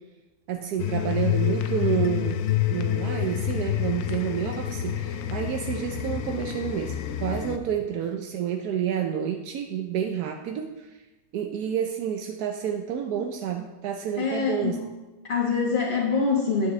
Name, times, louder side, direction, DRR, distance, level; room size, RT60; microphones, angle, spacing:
voice 1, 0.5-2.4 2.7-10.9 11.3-14.8, right 9 dB, 85° right, 4 dB, 1.2 m, -29 dB
sound 1, 0.8-7.6, left 10 dB, 70° left, 0.9 m, -28 dB
voice 2, 14.2-14.8 15.3-16.7, left 5 dB, 35° left, -6 dB, 1.4 m, -24 dB
9.5 x 8.7 x 3.2 m, 1.1 s
omnidirectional pair, 1.6 m